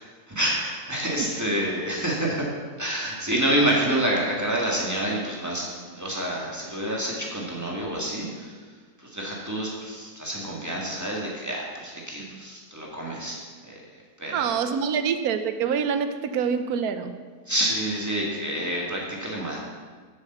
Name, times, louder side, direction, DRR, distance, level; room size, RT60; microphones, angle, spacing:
voice 1, 0.3-2.5 2.8-8.5 9.0-13.4 13.7-13.8 14.2-14.5 17.5-19.6, right 1 dB, 10° right, -3 dB, 1.9 m, -28 dB
voice 2, 14.3-17.1, right 7 dB, 75° right, 9 dB, 1.2 m, -26 dB
8.2 x 7.1 x 6.9 m, 1.5 s
omnidirectional pair, 1.7 m